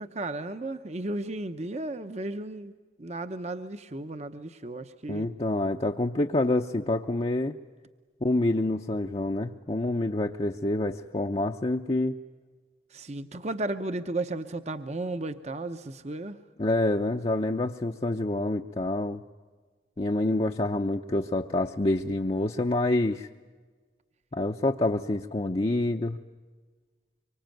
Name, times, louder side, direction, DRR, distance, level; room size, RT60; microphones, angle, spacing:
voice 1, 0.0-2.7 3.0-5.3 12.9-16.4, right 2 dB, 40° right, 9 dB, 0.9 m, -34 dB
voice 2, 5.1-7.5 8.2-12.2 16.6-19.2 20.0-23.3 24.3-26.2, left 2 dB, 35° left, 2 dB, 0.7 m, -27 dB
25.0 x 24.5 x 9.1 m, 1.4 s
head